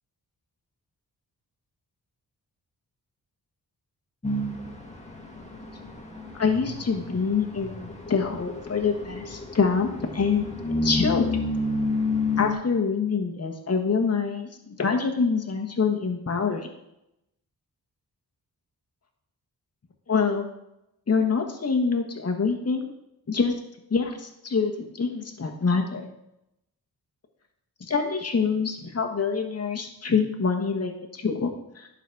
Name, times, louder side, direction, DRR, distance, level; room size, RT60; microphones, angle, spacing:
sound 1, 4.2-12.5, left 2 dB, 15° left, 1.6 m, -30 dB
voice 1, 6.3-11.3 12.4-16.7 20.1-20.5 21.1-22.9 23.3-23.5 23.9-26.1 27.9-31.9, left 5 dB, 40° left, 3 dB, 1.3 m, -25 dB
11.0 x 4.1 x 4.6 m, 0.84 s
cardioid pair, 60°, 39 cm